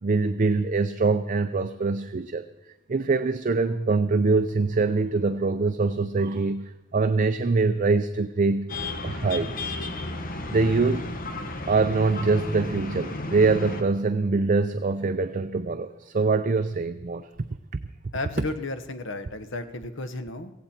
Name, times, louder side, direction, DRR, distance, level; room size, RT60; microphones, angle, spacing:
voice 1, 0.0-2.4 2.9-8.7 9.0-9.7 10.5-11.1 11.7-17.3, right 3 dB, 40° right, 10 dB, 0.5 m, -24 dB
sound 1, 8.7-13.8, left 2 dB, 40° left, 1.3 m, -33 dB
voice 2, 18.1-20.5, left 2 dB, 60° left, 10 dB, 1.1 m, -33 dB
17.0 x 16.0 x 4.4 m, 1.0 s
head